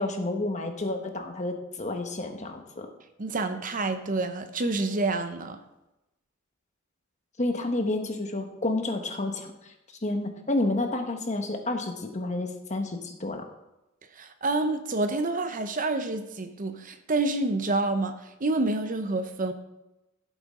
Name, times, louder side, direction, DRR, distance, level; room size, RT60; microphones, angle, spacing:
voice 1, 0.0-2.9 7.4-9.7 10.0-13.4, left 2 dB, 35° left, 1.3 m, -30 dB
voice 2, 3.2-5.6 14.1-19.5, right 2 dB, 40° right, 0.8 m, -28 dB
14.5 x 8.5 x 3.8 m
head